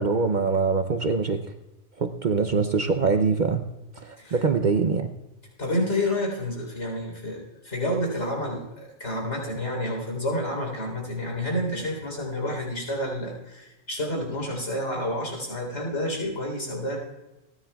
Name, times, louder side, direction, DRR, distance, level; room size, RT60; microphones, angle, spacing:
voice 1, 0.0-1.4 2.0-3.6 4.0-5.1, right 4 dB, 50° right, 7 dB, 0.7 m, -23 dB
voice 2, 5.6-17.0, left 1 dB, 70° left, 0 dB, 4.0 m, -29 dB
29.0 x 10.0 x 2.3 m, 1.0 s
omnidirectional pair, 1.2 m